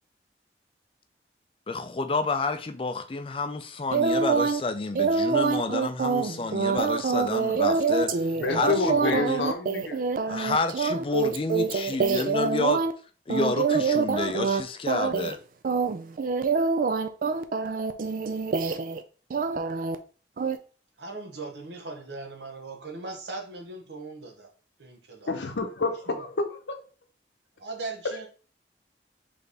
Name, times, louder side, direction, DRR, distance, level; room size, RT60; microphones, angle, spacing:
voice 1, 1.7-8.2 8.5-9.5 10.3-12.8 13.3-15.4, left 3 dB, 30° left, 0.4 m, -29 dB
sound 1, 3.9-4.6 4.9-12.9 13.3-14.6 14.9-15.4 15.6-19.0 19.3-20.0 20.4-20.6, right 5 dB, 50° right, 0.4 m, -26 dB
voice 2, 8.3-10.0 25.3-26.8 28.1-28.2, left 3 dB, 90° left, 0.8 m, -29 dB
voice 3, 21.0-24.5 24.8-25.3 26.1-26.3 27.6-28.3, right 3 dB, 80° right, 1.0 m, -39 dB
4.0 x 3.4 x 3.4 m
head